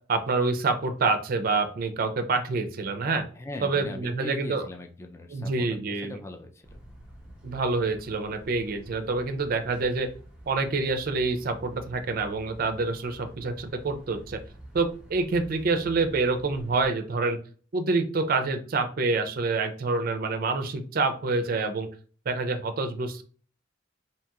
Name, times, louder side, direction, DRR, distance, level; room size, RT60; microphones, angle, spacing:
voice 1, 0.1-3.2 3.6-4.6 5.3-6.1 7.4-10.1 10.5-14.4 14.7-17.4 17.7-21.9 22.3-23.2, right 3 dB, 50° right, 8 dB, 0.4 m, -27 dB
voice 2, 3.3-6.8, left 1 dB, 15° left, 4 dB, 0.3 m, -40 dB
sound 1, 6.6-16.9, right 1 dB, 5° right, 0.8 m, -48 dB
2.8 x 2.8 x 2.3 m, 0.41 s
head